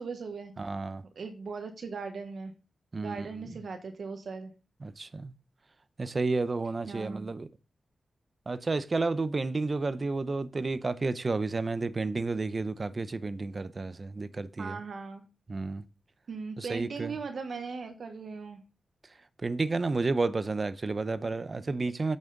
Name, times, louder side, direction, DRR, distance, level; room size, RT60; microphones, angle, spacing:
voice 1, 0.0-0.5 1.2-2.5 3.0-4.5 6.9-7.3 14.6-15.2 16.3-18.6, right 4 dB, 70° right, 1.1 m, -38 dB
voice 2, 0.6-1.0 2.9-3.3 4.8-5.3 6.0-7.5 8.5-14.8 15.5-15.8 16.6-17.2 19.4-22.2, right 3 dB, 40° right, 0.6 m, -31 dB
8.8 x 6.3 x 3.9 m
wide cardioid pair, 95°, 0 cm